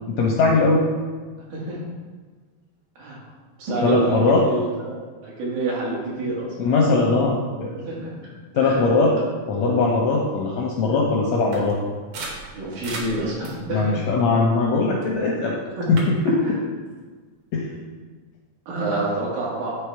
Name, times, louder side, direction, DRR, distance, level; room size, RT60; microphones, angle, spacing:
voice 1, 0.2-0.8 3.8-4.5 6.6-7.8 8.5-9.2 9.5-11.8 13.7-15.6 15.9-16.6 17.5-17.7, left 3 dB, 80° left, -2 dB, 1.6 m, -20 dB
voice 2, 1.5-1.8 3.0-3.2 3.6-4.7 5.2-6.6 7.8-8.3 8.6-8.8 12.5-13.9 15.8-15.9 18.7-19.7, right 2 dB, 85° right, -5 dB, 3.4 m, -27 dB
sound 1, 11.5-15.2 15.6-16.1, right 3 dB, 65° right, 1.7 m, -38 dB
9.2 x 3.2 x 4.6 m, 1.4 s
omnidirectional pair, 3.8 m